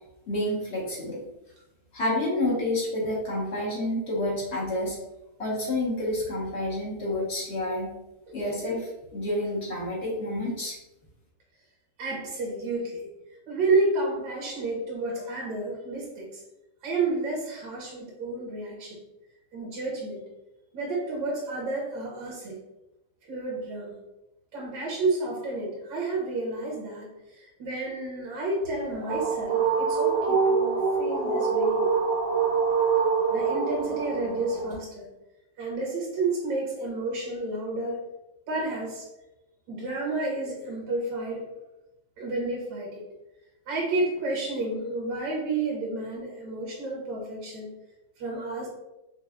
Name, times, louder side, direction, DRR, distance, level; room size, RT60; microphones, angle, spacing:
voice 1, 0.3-1.2 1.9-5.0 5.4-7.9 8.3-10.8, left 1 dB, 40° left, -5 dB, 1.3 m, -29 dB
voice 2, 12.0-13.1 13.5-16.4 16.8-19.0 19.5-20.2 20.7-22.6 23.3-24.0 24.5-27.1 27.3-31.9 33.3-35.1 35.6-38.0 38.5-39.1 39.7-41.4 42.2-43.1 43.7-47.7 48.2-48.7, right 2 dB, 80° right, -2 dB, 1.7 m, -30 dB
sound 1, 28.6-34.8, right 5 dB, 50° right, 1.1 m, -25 dB
5.6 x 2.5 x 2.3 m, 0.94 s
omnidirectional pair, 2.0 m